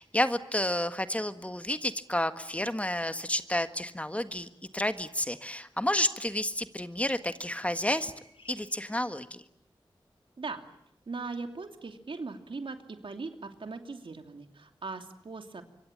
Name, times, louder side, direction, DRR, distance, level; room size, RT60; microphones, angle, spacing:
voice 1, 0.0-8.1 8.5-9.4, left 1 dB, 15° left, 10 dB, 1.6 m, -30 dB
sound 1, 4.4-8.8, left 3 dB, 90° left, 6.3 m, -62 dB
voice 2, 11.1-15.6, right 3 dB, 75° right, 6 dB, 2.8 m, -39 dB
26.0 x 23.5 x 8.8 m, 0.74 s
wide cardioid pair, 60°, 9 cm